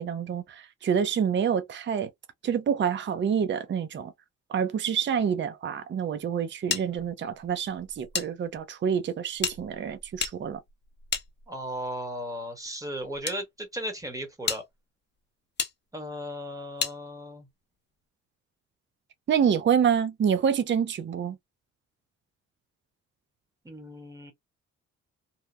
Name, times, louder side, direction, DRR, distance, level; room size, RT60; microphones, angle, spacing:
voice 1, 0.0-2.1 2.4-4.1 4.5-10.6 19.3-21.4, right 7 dB, 40° right, 0.6 m, -27 dB
sound 1, 6.7-8.3 8.6-8.7 9.4-11.8 12.6-13.4 13.9-14.0 14.4-14.6 15.6-15.7 16.8-17.0, left 6 dB, 35° left, 0.8 m, -33 dB
voice 2, 11.5-14.6 15.9-17.5 23.6-24.3, equal, 10° right, 1.3 m, -36 dB
2.9 x 2.3 x 2.3 m
cardioid pair, 90°, 30 cm